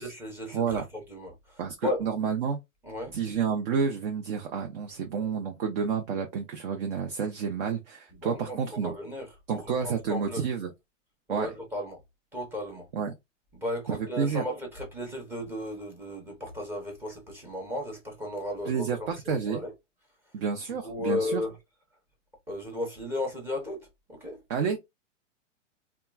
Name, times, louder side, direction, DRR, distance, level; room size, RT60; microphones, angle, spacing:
voice 1, 0.0-2.0 2.8-3.1 8.2-9.3 9.5-10.4 11.3-12.0 12.3-12.9 13.5-19.7 20.8-21.5 22.5-24.4, left 1 dB, 5° right, 0.6 m, -35 dB
voice 2, 0.5-0.9 1.6-2.6 3.1-8.9 9.5-10.7 11.3-11.5 12.9-13.1 13.9-14.4 18.6-19.6 20.3-21.4 24.5-24.8, right 6 dB, 50° right, 0.7 m, -30 dB
2.9 x 2.3 x 2.3 m
hypercardioid pair, 150°, 38 cm